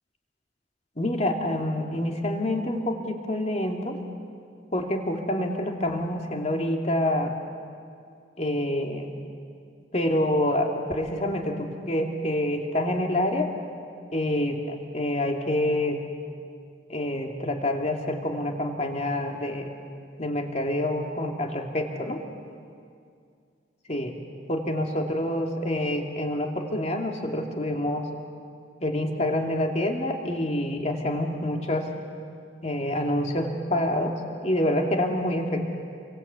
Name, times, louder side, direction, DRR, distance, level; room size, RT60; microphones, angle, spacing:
voice 1, 1.0-4.0 4.7-7.4 8.4-9.1 9.9-13.5 14.1-16.0 16.9-19.7 20.2-22.2 23.9-24.1 24.5-28.0 28.8-31.9 32.6-34.1 34.4-35.7, left 1 dB, 35° left, 2 dB, 2.6 m, -27 dB
28.5 x 23.5 x 8.3 m, 2.3 s
head